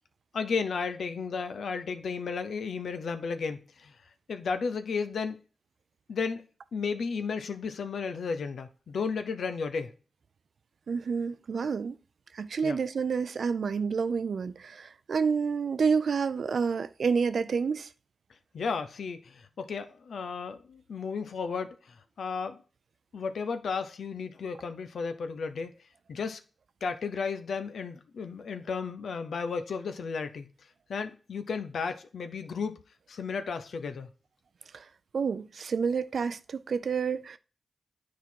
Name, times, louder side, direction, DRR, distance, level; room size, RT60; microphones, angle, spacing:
voice 1, 0.3-3.9 4.3-5.4 6.1-6.4 6.7-9.9 12.6-12.8 18.5-22.6 23.1-25.7 26.1-26.4 26.8-30.5 30.9-32.8 33.1-34.1, left 5 dB, 80° left, 0.7 m, -33 dB
voice 2, 10.9-12.0 12.3-17.9 34.7-34.9 35.1-37.4, right 5 dB, 75° right, 0.4 m, -29 dB
9.2 x 4.3 x 4.4 m
cardioid pair, 45°, 0 cm